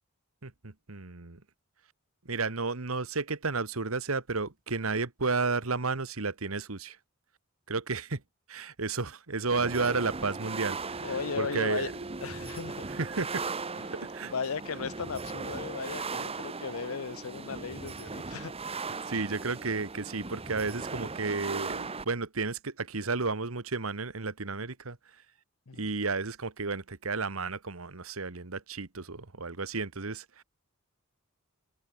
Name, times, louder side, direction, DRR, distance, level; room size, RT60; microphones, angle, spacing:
voice 1, 0.4-1.4 2.2-7.0 7.7-8.2 8.5-11.9 12.9-13.5 14.0-14.3 19.1-25.0 25.7-30.4, right 4 dB, 75° right, 1.6 m, -32 dB
sound 1, 9.5-22.0, right 4 dB, 30° right, 1.1 m, -38 dB
voice 2, 11.0-11.9 12.2-12.8 13.8-18.9 25.7-25.9, left 5 dB, 80° left, 0.7 m, -37 dB
open air
head